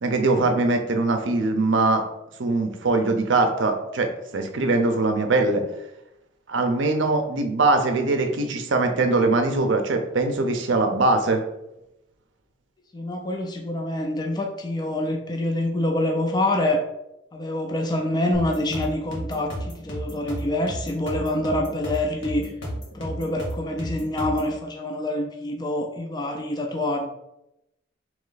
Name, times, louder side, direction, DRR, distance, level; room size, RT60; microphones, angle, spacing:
voice 1, 0.0-2.0 2.4-5.6 6.5-11.4, right 3 dB, 70° right, 5 dB, 0.6 m, -22 dB
voice 2, 12.9-16.8 17.3-22.5 22.9-27.1, left 1 dB, 20° left, 2 dB, 0.4 m, -26 dB
sound 1, 18.3-24.5, equal, 80° left, 1.5 m, -33 dB
3.1 x 3.0 x 3.9 m, 0.86 s
head